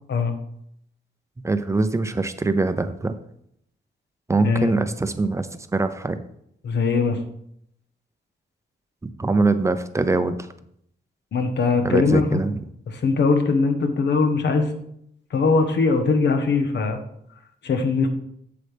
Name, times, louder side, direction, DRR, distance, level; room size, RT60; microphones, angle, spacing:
voice 1, 1.4-3.1 4.3-5.5 5.7-6.2 9.2-10.3 11.8-12.5, right 3 dB, 15° right, 10 dB, 0.5 m, -22 dB
voice 2, 6.6-7.2 11.3-12.4 12.9-14.7 15.3-17.0 17.6-18.1, left 4 dB, 80° left, 6 dB, 1.2 m, -21 dB
8.3 x 7.7 x 3.4 m, 0.71 s
wide cardioid pair, 170°, 18 cm